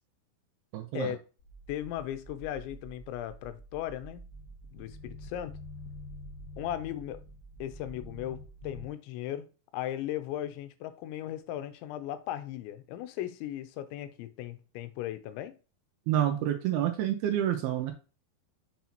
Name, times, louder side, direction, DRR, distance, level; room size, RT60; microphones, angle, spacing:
voice 1, 0.7-1.1 16.1-17.9, right 11 dB, 80° right, 2.3 m, -28 dB
sound 1, 1.4-8.9, equal, 70° left, 1.5 m, -47 dB
voice 2, 1.7-4.2 4.7-5.5 6.6-7.2 7.6-9.5 9.7-15.5, left 12 dB, 90° left, 3.0 m, -37 dB
6.9 x 5.8 x 2.9 m
omnidirectional pair, 5.1 m